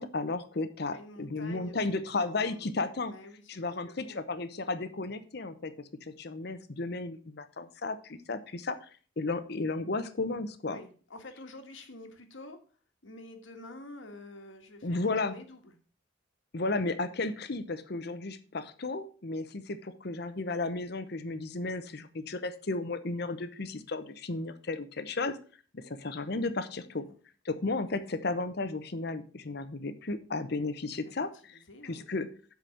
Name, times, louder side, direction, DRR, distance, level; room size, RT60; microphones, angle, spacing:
voice 1, 0.0-3.1 3.5-5.7 6.0-8.8 9.2-10.8 14.8-15.4 16.5-25.4 25.7-27.1 27.4-32.3, left 3 dB, 55° left, 11 dB, 0.8 m, -34 dB
voice 2, 0.9-1.8 2.2-2.8 3.1-4.2 10.7-12.6 13.0-15.8 26.9-27.2 31.1-32.1, left 2 dB, 80° left, 6 dB, 1.6 m, -49 dB
7.7 x 5.2 x 6.4 m, 0.41 s
head